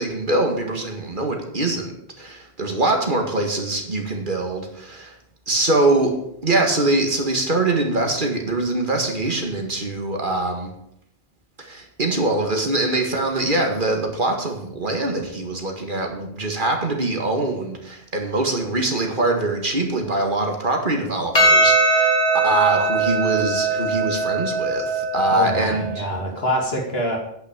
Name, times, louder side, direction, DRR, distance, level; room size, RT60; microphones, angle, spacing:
voice 1, 0.0-1.9 2.2-5.1 5.5-6.1 6.4-10.7 11.6-22.2 22.4-25.9, right 2 dB, 50° right, 2 dB, 2.1 m, -23 dB
Percussion, 21.3-26.0, right 2 dB, 40° left, 2.7 m, -20 dB
voice 2, 25.3-27.2, equal, 70° left, 1 dB, 2.7 m, -25 dB
10.0 x 6.2 x 8.8 m, 0.75 s
omnidirectional pair, 1.1 m